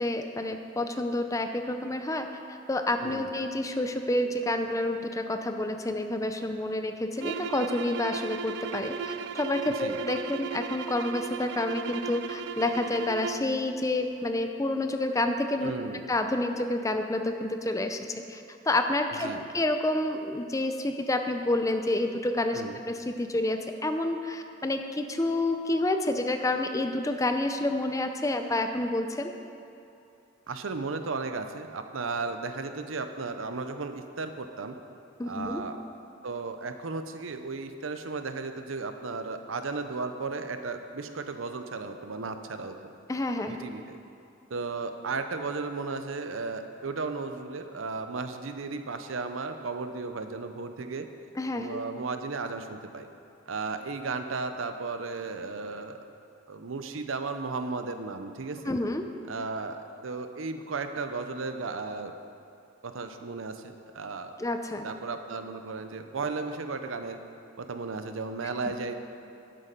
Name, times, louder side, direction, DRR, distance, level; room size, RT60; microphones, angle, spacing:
voice 1, 0.0-2.3 2.7-15.7 16.1-18.0 18.3-19.3 19.5-22.6 22.9-29.3 35.2-35.6 43.1-43.6 51.4-51.8 58.6-59.1 64.4-64.9, left 1 dB, 15° left, 6 dB, 0.5 m, -29 dB
sound 1, 7.2-13.5, right 6 dB, 60° right, 0.3 m, -36 dB
voice 2, 15.6-16.0 19.2-19.4 22.5-22.8 30.5-34.8 35.2-35.8 36.2-42.8 43.4-44.0 44.5-51.1 51.5-53.1 53.5-56.0 56.5-58.7 59.3-62.1 62.8-64.4 64.8-67.2 67.6-68.9, right 4 dB, 80° right, 8 dB, 0.7 m, -35 dB
11.5 x 8.3 x 5.2 m, 2.7 s
head